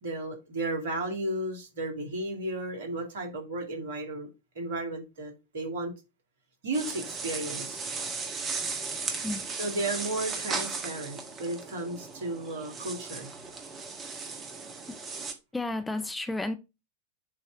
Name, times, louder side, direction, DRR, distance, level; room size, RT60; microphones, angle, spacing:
voice 1, 0.0-4.3 4.6-5.9 6.6-7.8 9.6-13.3, right 2 dB, 60° right, 2.2 m, -34 dB
sound 1, 6.7-15.3, right 4 dB, 25° right, 1.3 m, -36 dB
voice 2, 15.5-16.6, left 2 dB, 10° left, 0.5 m, -32 dB
7.4 x 3.1 x 4.7 m
figure-of-eight pair, 90°, 0 cm